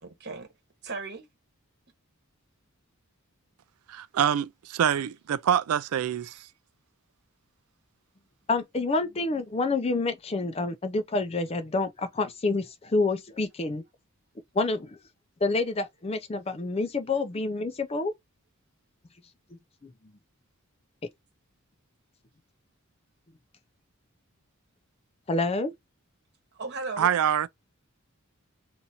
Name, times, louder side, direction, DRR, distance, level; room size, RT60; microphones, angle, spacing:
voice 1, 0.0-0.5 0.8-1.3 6.2-6.3 26.5-27.2, right 3 dB, 50° right, 1.1 m, -36 dB
voice 2, 3.9-6.4 27.0-27.5, right 9 dB, 90° right, 0.4 m, -25 dB
voice 3, 8.5-13.8 14.5-15.0 15.4-18.1 19.8-19.9 25.3-25.7, left 3 dB, 30° left, 0.4 m, -28 dB
2.7 x 2.5 x 4.2 m
head